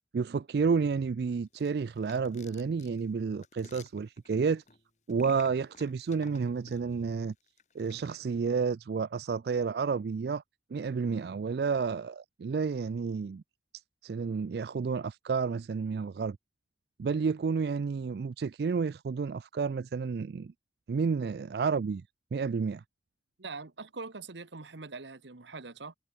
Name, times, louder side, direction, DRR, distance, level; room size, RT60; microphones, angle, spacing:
voice 1, 0.1-4.6 5.1-7.3 7.7-10.4 10.7-13.4 14.0-16.4 17.0-20.5 20.9-22.0 22.3-22.8, right 5 dB, 65° right, 0.4 m, -30 dB
sound 1, 1.5-6.9 7.4-8.2, left 5 dB, 40° left, 4.1 m, -55 dB
voice 2, 23.4-25.9, right 4 dB, 85° right, 1.3 m, -43 dB
head